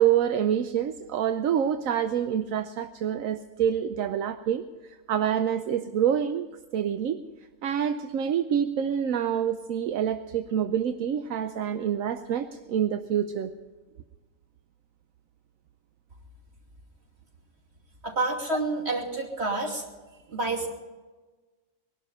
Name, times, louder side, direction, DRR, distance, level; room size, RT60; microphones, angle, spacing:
voice 1, 0.0-6.5 6.7-7.2 7.6-13.5, right 9 dB, 80° right, 8 dB, 1.1 m, -27 dB
voice 2, 18.0-19.8 20.3-20.7, right 2 dB, 50° right, 0 dB, 3.1 m, -28 dB
21.5 x 12.0 x 5.6 m, 1.2 s
omnidirectional pair, 1.4 m